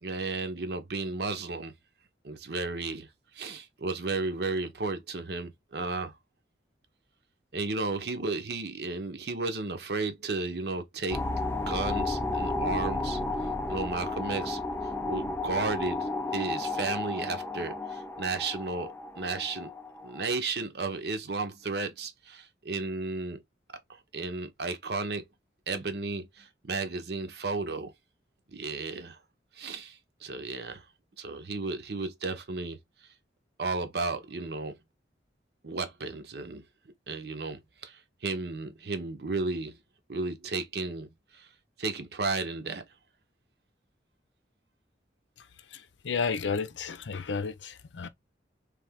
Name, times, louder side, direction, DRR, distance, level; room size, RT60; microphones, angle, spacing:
voice 1, 0.0-1.7 2.2-3.1 3.3-6.1 7.5-11.2 11.7-13.2 13.7-14.6 15.1-19.7 20.0-23.4 23.9-25.2 25.7-27.9 28.5-29.2 29.5-30.8 31.2-32.8 33.6-34.8 35.6-36.6 37.1-39.8 40.1-41.5 41.8-42.8, right 3 dB, 60° right, 0.8 m, -33 dB
sound 1, 11.1-20.4, left 2 dB, 10° left, 0.3 m, -33 dB
voice 2, 45.4-48.1, left 5 dB, 85° left, 0.6 m, -33 dB
3.4 x 3.3 x 3.5 m
head